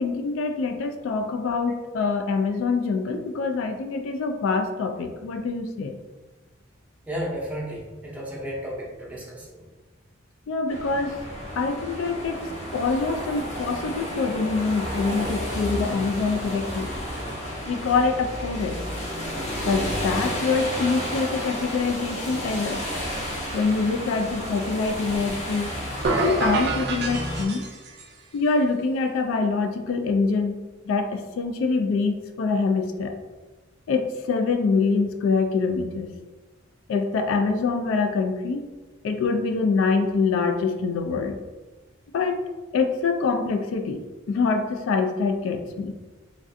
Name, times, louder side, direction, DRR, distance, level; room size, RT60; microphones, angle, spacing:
voice 1, 0.0-6.0 10.5-11.2 11.6-12.4 12.7-16.9 17.7-18.8 19.7-22.8 23.5-25.7 26.2-27.6 28.3-30.6 30.9-33.2 33.9-36.1 36.9-38.6 39.0-41.4 42.1-42.4 42.7-44.0 44.3-45.9, left 4 dB, 75° left, 6 dB, 0.3 m, -25 dB
voice 2, 7.1-9.6, equal, 5° right, -4 dB, 0.6 m, -33 dB
sound 1, 10.7-27.4, equal, 35° left, 0.6 m, -32 dB
sound 2, 26.0-28.1, right 3 dB, 55° right, 0.4 m, -27 dB
3.2 x 2.5 x 2.5 m, 1.2 s
head